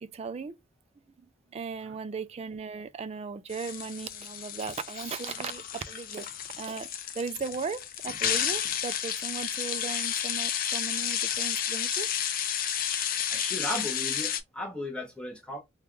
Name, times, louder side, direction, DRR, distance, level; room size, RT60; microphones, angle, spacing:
voice 1, 0.0-0.6 1.5-6.3 6.6-6.9 7.1-12.1, right 5 dB, 30° right, 0.3 m, -37 dB
sound 1, 3.5-14.4, left 9 dB, 45° left, 0.5 m, -31 dB
voice 2, 13.3-15.6, left 1 dB, 5° left, 0.8 m, -36 dB
3.0 x 2.3 x 3.5 m
head